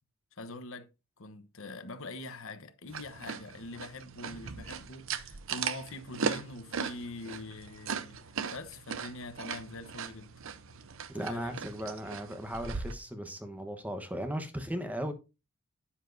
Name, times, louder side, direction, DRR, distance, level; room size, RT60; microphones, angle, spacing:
voice 1, 0.3-0.9 1.2-8.2 8.5-10.3 11.1-11.6, left 2 dB, 65° left, 1.1 m, -44 dB
sound 1, 2.9-12.9, right 6 dB, 65° right, 0.8 m, -38 dB
voice 2, 11.1-15.1, equal, 5° right, 1.0 m, -37 dB
10.0 x 9.9 x 2.7 m
head